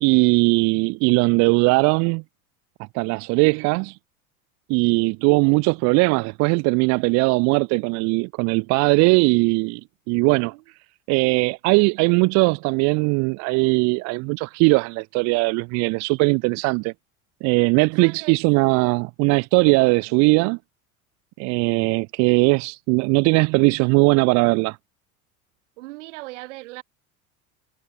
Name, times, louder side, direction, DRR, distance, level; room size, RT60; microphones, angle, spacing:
voice 1, 0.0-2.2 2.9-4.0 4.7-9.8 10.1-10.5 11.1-16.9 17.4-20.6 21.4-24.8, right 29 dB, 40° right, 0.7 m, -19 dB
voice 2, 18.0-18.4 20.1-20.3 25.8-26.8, right 21 dB, 55° right, 2.7 m, -39 dB
figure-of-eight pair, 75°, 42 cm